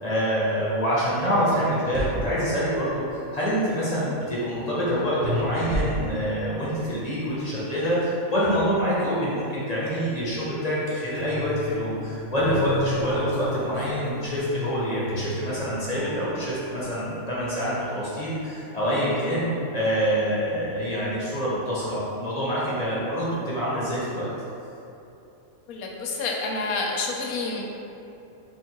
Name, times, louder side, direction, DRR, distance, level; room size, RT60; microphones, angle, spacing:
voice 1, 0.0-24.3, equal, 35° left, -9 dB, 0.7 m, -26 dB
sound 1, 1.5-2.1 5.2-6.4, right 1 dB, 55° right, 0.5 m, -29 dB
sound 2, 11.1-16.9, left 2 dB, 70° left, 1.2 m, -35 dB
voice 2, 25.7-27.6, left 3 dB, 85° left, -1 dB, 1.1 m, -28 dB
3.5 x 2.3 x 4.5 m, 2.8 s
omnidirectional pair, 1.5 m